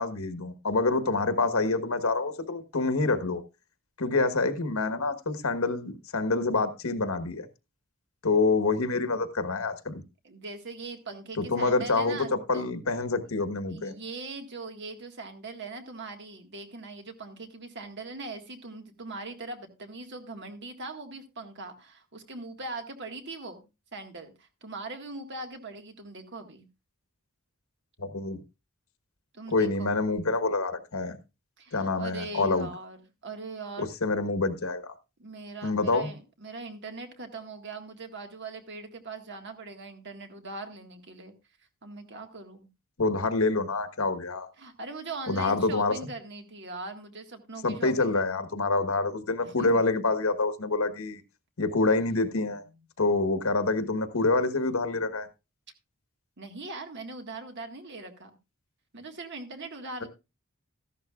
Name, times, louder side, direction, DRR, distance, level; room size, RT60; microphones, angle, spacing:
voice 1, 0.0-3.4 4.0-7.5 8.2-10.0 11.4-13.9 28.0-28.4 29.5-31.2 31.7-32.7 33.8-34.9 35.6-36.1 43.0-44.5 45.3-45.9 47.6-51.2 51.6-52.6 53.0-55.3, left 3 dB, 75° left, 1.3 m, -27 dB
voice 2, 10.2-12.8 13.7-23.6 23.9-26.7 29.3-29.9 31.6-33.0 33.2-33.9 35.2-41.3 41.8-42.7 44.6-48.2 49.4-49.8 52.5-52.6 56.4-58.3 58.9-60.1, right 3 dB, 55° right, 1.8 m, -41 dB
14.0 x 11.5 x 2.4 m
head